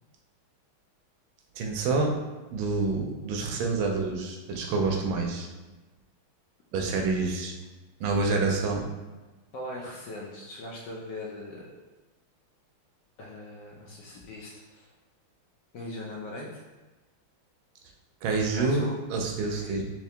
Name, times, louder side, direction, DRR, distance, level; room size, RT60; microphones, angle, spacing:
voice 1, 1.5-2.1 2.5-5.5 6.7-7.5 8.0-8.9 18.2-18.8 19.1-19.8, right 3 dB, 75° right, 2 dB, 1.3 m, -27 dB
voice 2, 9.5-11.7 13.2-14.9 15.7-16.6 18.5-19.0 19.6-19.8, left 1 dB, 70° left, -3 dB, 1.1 m, -40 dB
3.6 x 3.0 x 3.3 m, 1.2 s
omnidirectional pair, 2.3 m